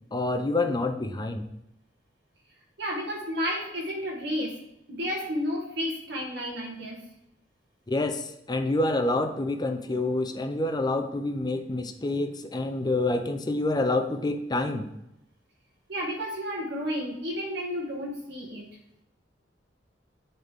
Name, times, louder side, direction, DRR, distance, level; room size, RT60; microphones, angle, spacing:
voice 1, 0.1-1.5 7.9-14.9, left 2 dB, 25° left, 7 dB, 0.6 m, -27 dB
voice 2, 2.8-4.5 4.9-7.0 15.9-18.6, equal, 65° right, -3 dB, 1.6 m, -31 dB
9.4 x 4.1 x 3.5 m, 0.84 s
head